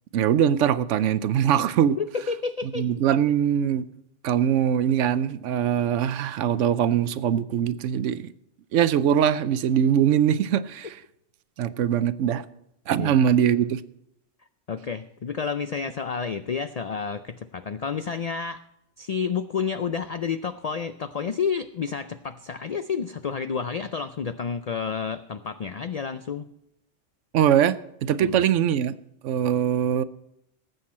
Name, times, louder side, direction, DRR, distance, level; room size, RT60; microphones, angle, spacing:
voice 1, 0.1-2.0 2.8-3.8 4.2-8.3 8.7-10.9 11.6-12.5 12.9-13.8 27.3-28.9 29.2-30.0, right 9 dB, 80° right, 0.9 m, -22 dB
voice 2, 2.0-2.9 13.0-13.2 14.7-18.6 19.0-26.5 28.2-28.4, left 6 dB, 80° left, 0.3 m, -30 dB
18.5 x 7.9 x 4.3 m
omnidirectional pair, 1.3 m